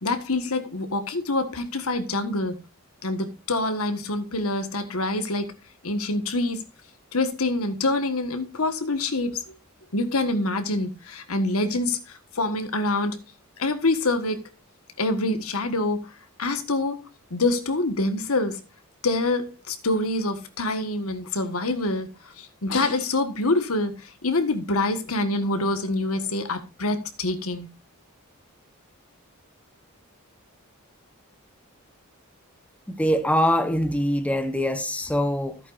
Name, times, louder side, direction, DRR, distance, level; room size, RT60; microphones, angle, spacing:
voice 1, 0.0-2.5 3.0-5.5 5.8-6.6 7.1-9.4 9.9-13.2 13.6-14.4 15.0-16.1 16.4-17.0 17.3-18.6 19.0-22.1 22.4-27.7, left 2 dB, 75° left, 1.5 m, -26 dB
voice 2, 32.9-35.6, equal, 5° left, 1.0 m, -23 dB
14.5 x 8.7 x 2.6 m
head